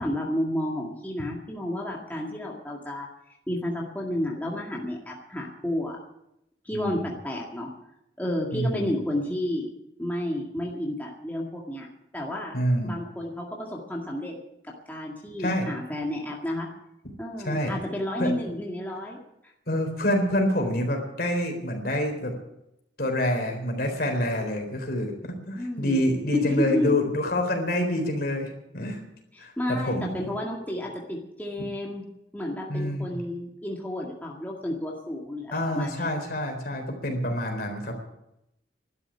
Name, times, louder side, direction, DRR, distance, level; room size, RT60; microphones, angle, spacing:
voice 1, 0.0-3.1 3.5-6.0 6.6-7.7 8.2-9.7 10.0-11.9 12.1-12.5 12.8-14.3 14.9-16.7 17.2-19.2 25.5-26.0 26.3-27.0 29.3-32.1 32.3-36.1, left 1 dB, 10° left, -2 dB, 2.1 m, -31 dB
voice 2, 6.7-7.1 8.5-8.9 12.5-13.0 15.4-15.7 17.4-17.7 18.2-18.3 19.7-22.3 23.0-29.0 29.4-30.2 32.7-33.1 35.5-38.0, left 1 dB, 55° left, 3 dB, 4.0 m, -27 dB
12.5 x 11.0 x 9.9 m, 0.84 s
head